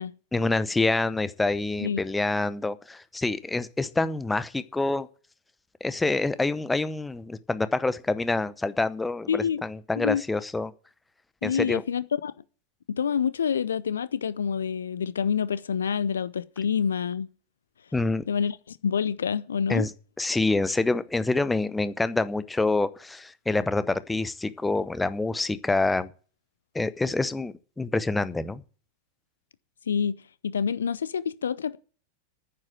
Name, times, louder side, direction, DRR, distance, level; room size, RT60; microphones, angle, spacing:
voice 1, 0.3-5.1 5.8-10.7 11.4-11.8 17.9-18.2 19.7-19.9 20.2-26.1 26.7-28.6, left 2 dB, 10° left, 0.8 m, -26 dB
voice 2, 9.3-9.6 10.0-10.2 11.4-12.3 12.9-17.3 18.3-19.9 29.9-31.8, left 7 dB, 70° left, 0.5 m, -27 dB
9.8 x 7.6 x 8.8 m
figure-of-eight pair, 90°, 0 cm